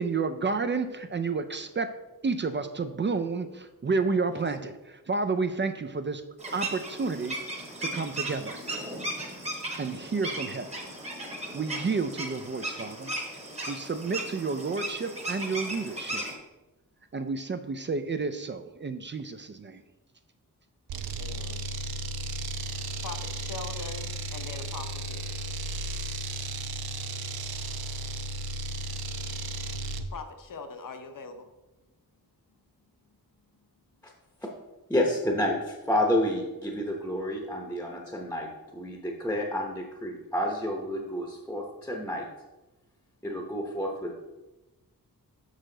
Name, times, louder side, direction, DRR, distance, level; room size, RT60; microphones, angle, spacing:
voice 1, 0.0-1.9 2.2-6.2 6.5-7.4 7.8-8.6 9.8-10.7 11.5-13.1 13.7-16.2 17.1-19.8, right 4 dB, 35° right, 9 dB, 0.4 m, -30 dB
voice 2, 4.3-4.7 10.0-10.5 21.2-21.6 23.0-25.3 30.1-31.5, left 4 dB, 60° left, 7 dB, 0.8 m, -42 dB
sound 1, 6.4-16.3, right 1 dB, 20° right, 1.0 m, -36 dB
sound 2, 20.9-30.1, right 2 dB, 85° right, 0.6 m, -34 dB
voice 3, 34.9-38.5 38.7-42.3 43.2-44.1, left 1 dB, 5° left, 0 dB, 0.8 m, -29 dB
6.5 x 6.3 x 3.8 m, 1.1 s
wide cardioid pair, 165°, 36 cm